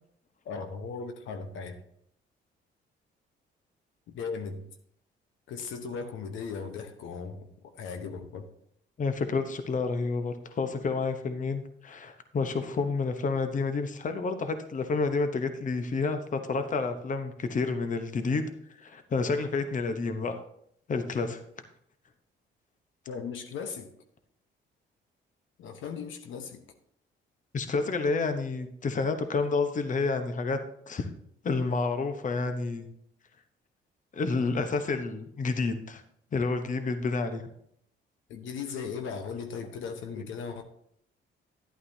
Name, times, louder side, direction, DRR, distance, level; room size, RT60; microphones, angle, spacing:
voice 1, 0.4-1.8 4.1-4.7 5.5-8.5 23.1-23.9 25.6-26.6 38.3-40.6, left 5 dB, 80° left, 1.0 m, -37 dB
voice 2, 9.0-18.5 18.8-20.4 20.9-21.4 27.5-30.6 30.9-31.1 31.4-32.9 34.1-36.0 36.3-37.4 40.2-40.3, left 4 dB, 40° left, 0.9 m, -29 dB
11.5 x 8.6 x 2.7 m
cardioid pair, 90°, 20 cm